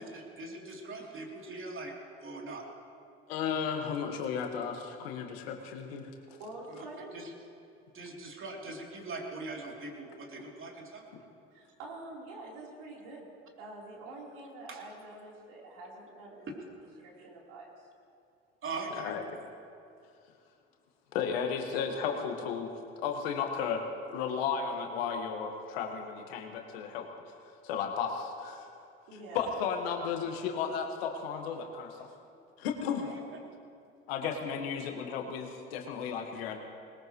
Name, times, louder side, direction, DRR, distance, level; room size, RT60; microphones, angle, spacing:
voice 1, 0.0-1.9 2.2-2.6 6.7-6.8 7.1-7.3 7.9-11.0 14.7-14.8 16.5-16.6 18.6-19.2 33.0-33.2, right 3 dB, 45° right, -1 dB, 3.3 m, -41 dB
voice 2, 3.3-6.1 19.0-19.2 21.1-22.7 23.0-23.8 24.1-27.1 27.6-28.7 29.3-32.1 32.6-33.1 34.1-36.6, left 6 dB, 90° left, 3 dB, 1.6 m, -34 dB
voice 3, 6.3-7.1 11.5-13.3 13.6-16.5 17.0-17.9 29.1-29.6 32.0-32.1 32.8-33.0, right 2 dB, 80° right, -4 dB, 4.0 m, -46 dB
20.5 x 20.0 x 3.2 m, 2.5 s
hypercardioid pair, 65°, 29 cm